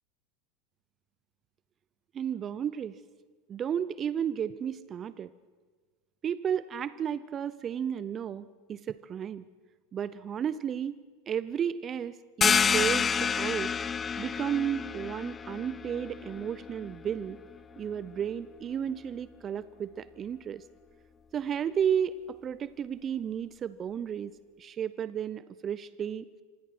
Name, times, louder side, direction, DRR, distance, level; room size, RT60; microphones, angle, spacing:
voice 1, 2.1-3.0 3.5-5.3 6.2-9.4 9.9-13.7 14.2-17.4 17.8-20.6 21.3-26.2, right 8 dB, 35° right, 16 dB, 0.8 m, -33 dB
sound 1, 12.4-17.8, left 6 dB, 25° left, 0.6 m, -29 dB
27.0 x 25.5 x 6.1 m, 1.4 s
hypercardioid pair, 85°, 0 cm